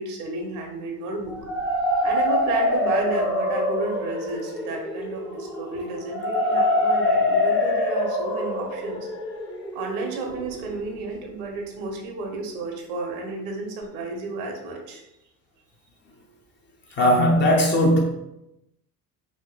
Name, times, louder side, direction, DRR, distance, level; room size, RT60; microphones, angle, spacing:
voice 1, 0.0-1.4 2.0-9.1 9.7-15.0, right 3 dB, 60° right, 2 dB, 0.8 m, -32 dB
sound 1, 1.3-11.1, left 1 dB, 85° left, 1.4 m, -25 dB
voice 2, 17.0-18.0, equal, 25° left, -2 dB, 0.5 m, -18 dB
3.5 x 2.7 x 2.2 m, 0.90 s
figure-of-eight pair, 60°, 49 cm